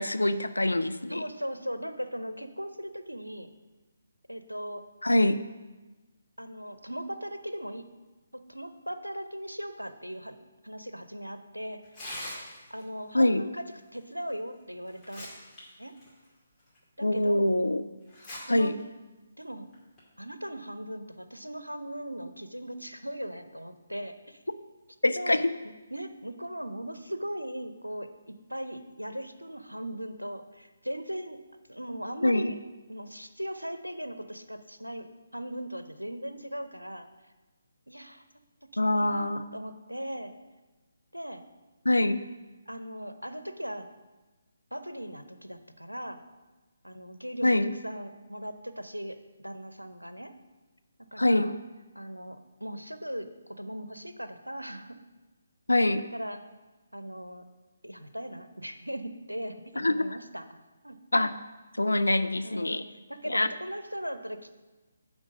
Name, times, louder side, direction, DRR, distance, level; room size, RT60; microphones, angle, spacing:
voice 1, 0.0-1.2 5.0-5.4 13.1-13.4 17.0-17.8 18.5-18.7 25.0-25.4 32.2-32.5 38.8-39.4 41.8-42.2 47.4-47.7 51.2-51.5 55.7-56.0 59.8-60.0 61.1-61.3 61.8-62.8 63.3-63.5, left 1 dB, 75° left, 10 dB, 0.5 m, -24 dB
voice 2, 1.1-3.5 4.3-4.8 6.4-7.8 8.3-10.4 10.6-11.8 12.7-13.6 13.9-15.3 15.8-15.9 17.0-17.5 18.5-18.7 19.4-19.7 20.2-24.4 25.2-25.4 25.9-31.4 31.7-32.6 32.9-37.1 37.9-38.2 38.9-40.3 41.1-41.4 42.7-43.9 44.7-46.2 46.8-47.6 47.8-50.3 51.1-51.5 51.9-55.0 56.1-56.4 56.9-57.4 57.8-60.6 60.8-61.0 62.4-62.8 63.1-64.5, equal, 90° right, 10 dB, 0.7 m, -38 dB
Tearing, 11.8-12.8 14.3-14.4 14.9-15.6 16.0-16.1 16.8-16.9 18.1-18.4 18.8-18.9 19.7-20.0, left 1 dB, 10° left, 2.4 m, -41 dB
9.7 x 3.9 x 6.0 m, 1.2 s
figure-of-eight pair, 140°, 0 cm